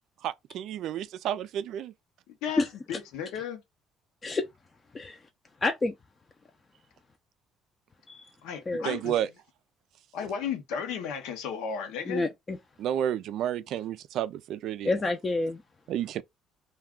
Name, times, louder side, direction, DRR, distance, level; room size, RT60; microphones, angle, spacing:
voice 1, 0.2-1.9 8.8-9.3 12.8-14.9 15.9-16.2, right 10 dB, 70° right, 0.3 m, -31 dB
voice 2, 2.4-3.6 8.4-9.1 10.1-12.3, left 7 dB, 85° left, 0.7 m, -34 dB
voice 3, 5.6-5.9 8.1-8.3 8.7-8.9 12.1-12.6 14.8-15.6, left 2 dB, 30° left, 0.5 m, -29 dB
2.3 x 2.3 x 3.6 m
supercardioid pair, 85°, 0 cm